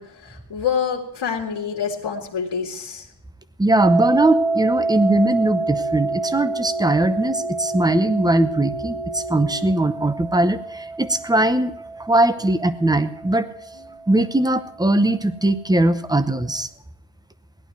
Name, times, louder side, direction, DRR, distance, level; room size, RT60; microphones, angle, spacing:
voice 1, 0.0-3.1 13.8-14.0, left 7 dB, 70° left, 0 dB, 2.0 m, -27 dB
voice 2, 3.6-11.7 12.0-13.5 14.1-16.7, right 1 dB, 10° right, 12 dB, 0.7 m, -20 dB
sound 1, 3.8-9.7, equal, 70° right, 5.2 m, -35 dB
sound 2, 3.8-14.7, right 3 dB, 85° right, 1.1 m, -28 dB
17.0 x 11.5 x 4.5 m, 0.80 s
wide cardioid pair, 135°, 46 cm